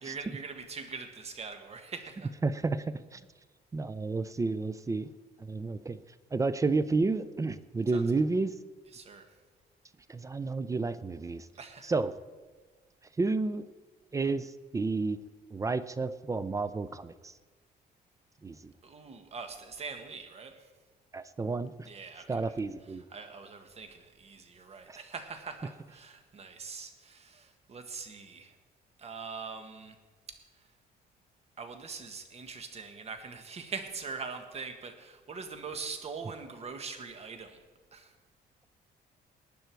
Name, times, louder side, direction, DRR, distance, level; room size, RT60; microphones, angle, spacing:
voice 1, 0.0-2.3 7.9-8.0 8.9-9.2 11.5-11.9 18.8-20.7 21.8-22.5 23.1-28.5 29.0-29.9 30.3-30.4 31.6-37.6 37.9-38.1, right 5 dB, 40° right, 7 dB, 1.6 m, -42 dB
voice 2, 2.4-3.2 3.7-5.1 5.4-6.0 6.3-8.5 10.1-11.5 11.8-12.1 13.2-13.6 14.1-15.2 15.5-17.3 18.4-18.7 21.1-21.9 22.3-23.0 24.9-25.0, right 3 dB, 20° right, 15 dB, 0.5 m, -31 dB
19.0 x 9.4 x 4.6 m, 1.3 s
cardioid pair, 125°, 17 cm